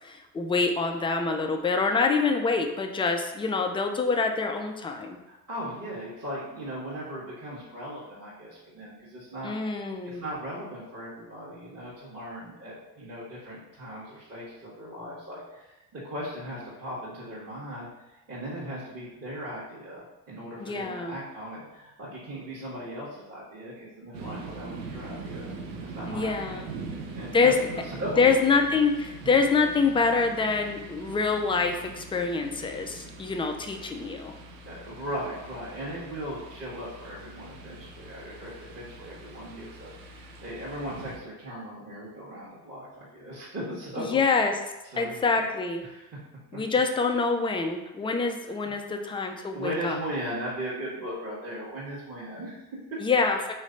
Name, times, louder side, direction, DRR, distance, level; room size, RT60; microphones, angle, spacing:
voice 1, 0.0-5.2 9.4-10.2 20.6-21.2 26.1-26.7 27.3-27.6 28.2-34.4 44.0-44.6 45.0-45.8 46.5-50.0 53.0-53.5, left 4 dB, 10° left, 4 dB, 0.3 m, -26 dB
voice 2, 5.3-9.6 10.0-25.5 25.8-26.7 27.1-27.5 27.8-28.2 29.2-29.3 34.6-44.2 44.9-45.5 45.8-46.1 46.5-46.6 49.5-53.0, equal, 30° right, -8 dB, 1.3 m, -38 dB
sound 1, 24.1-41.2, right 3 dB, 75° right, 0.8 m, -43 dB
3.2 x 3.1 x 3.9 m, 1.0 s
hypercardioid pair, 65°, 49 cm